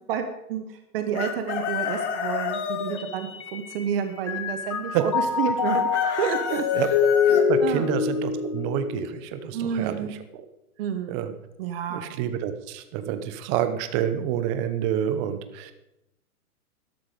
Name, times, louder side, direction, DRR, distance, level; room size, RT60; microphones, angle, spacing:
voice 1, 0.1-5.9 6.2-6.8 7.3-7.9 9.5-10.1 10.8-12.1, right 8 dB, 40° right, 8 dB, 1.3 m, -30 dB
Chicken rooster, 1.1-3.0 5.6-7.4, left 7 dB, 50° left, 1.9 m, -30 dB
Mallet percussion, 2.5-3.9 4.3-9.7, left 7 dB, 20° left, 0.4 m, -25 dB
voice 2, 7.5-10.0 11.1-11.3 11.9-15.7, right 10 dB, 20° right, 10 dB, 0.7 m, -28 dB
13.0 x 12.0 x 5.1 m, 0.90 s
hypercardioid pair, 145°, 46 cm